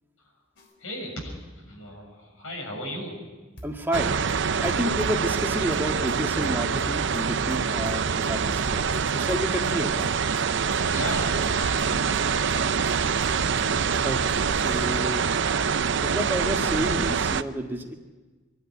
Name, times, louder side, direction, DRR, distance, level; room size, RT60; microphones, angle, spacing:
sound 1, 0.6-0.7 3.6-15.0, equal, 60° left, 4.0 m, -44 dB
voice 1, 0.8-3.2 10.9-12.8, equal, 80° left, 1 dB, 7.0 m, -36 dB
voice 2, 3.6-4.2 4.6-10.1 14.0-15.3 16.0-17.9, equal, 10° right, 2 dB, 1.7 m, -30 dB
sound 2, 3.9-17.4, right 6 dB, 60° right, 0.6 m, -25 dB
24.5 x 11.5 x 9.7 m, 1.3 s
head